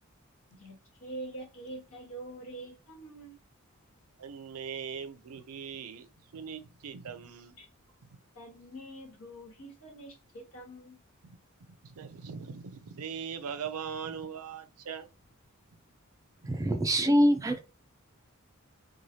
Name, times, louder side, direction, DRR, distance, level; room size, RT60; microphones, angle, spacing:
voice 1, 0.5-3.4 7.6-7.7 8.3-11.0, right 2 dB, 70° left, 1.4 m, -45 dB
voice 2, 4.2-7.6 8.0-8.2 11.2-11.4 11.8-15.1, right 7 dB, 85° right, 0.5 m, -40 dB
voice 3, 16.4-17.6, equal, 15° right, 0.3 m, -24 dB
3.1 x 2.2 x 2.7 m
head